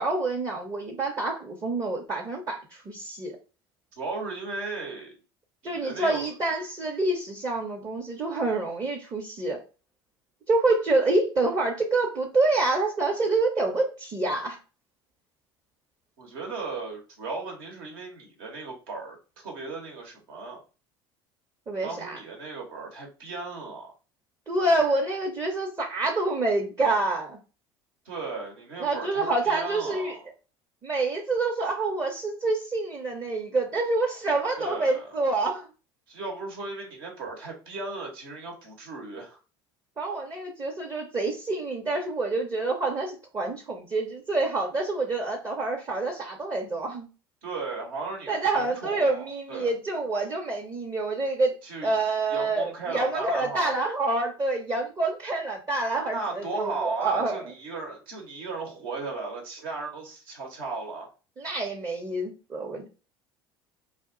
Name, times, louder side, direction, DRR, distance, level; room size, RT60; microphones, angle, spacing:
voice 1, 0.0-3.4 5.6-9.6 10.5-14.6 21.7-22.2 24.5-27.4 28.8-30.2 30.8-35.7 40.0-47.1 48.3-51.5 51.8-57.4 61.4-62.9, right 2 dB, 30° right, 0 dB, 0.7 m, -27 dB
voice 2, 3.9-5.2 5.6-6.3 16.2-20.6 21.8-23.9 28.0-30.2 34.6-35.1 36.1-39.4 47.4-49.7 51.6-51.9 52.3-53.7 56.1-61.1, right 3 dB, 70° right, 0 dB, 1.0 m, -36 dB
2.4 x 2.1 x 3.7 m, 0.33 s
hypercardioid pair, 65°, 13 cm